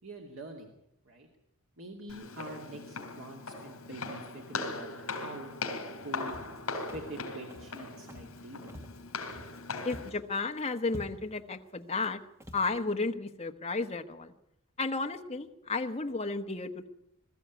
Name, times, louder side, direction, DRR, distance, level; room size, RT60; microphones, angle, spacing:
voice 1, 0.0-0.8 1.0-1.3 1.8-5.5 6.0-6.4 6.9-8.8, right 1 dB, 60° right, 2 dB, 2.4 m, -45 dB
Walk footsteps, 2.1-10.1, left 3 dB, 65° left, 3.9 m, -39 dB
Walk footsteps 2, 6.3-6.6 6.9-7.2 7.5-7.8 8.1-8.4 8.7-9.6 9.9-10.2 10.5-10.6 10.9-11.4 11.9-12.1 12.4-12.7, equal, 10° right, 1.5 m, -47 dB
voice 2, 9.8-12.2 12.5-14.3 14.8-16.9, left 3 dB, 30° left, 4 dB, 1.2 m, -33 dB
21.0 x 14.0 x 9.3 m, 0.80 s
head